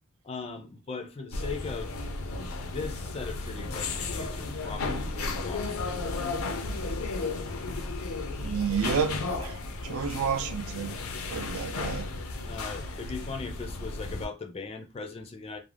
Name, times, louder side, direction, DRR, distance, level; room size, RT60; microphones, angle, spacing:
voice 1, 0.2-1.9 2.6-6.0 12.4-15.6, left 4 dB, 30° left, 0.3 m, -39 dB
sound 1, 1.3-14.3, left 3 dB, 85° left, 0.5 m, -34 dB
voice 2, 8.4-9.6 9.8-11.0 11.3-12.0, right 6 dB, 80° right, 0.4 m, -30 dB
2.4 x 2.0 x 3.2 m
head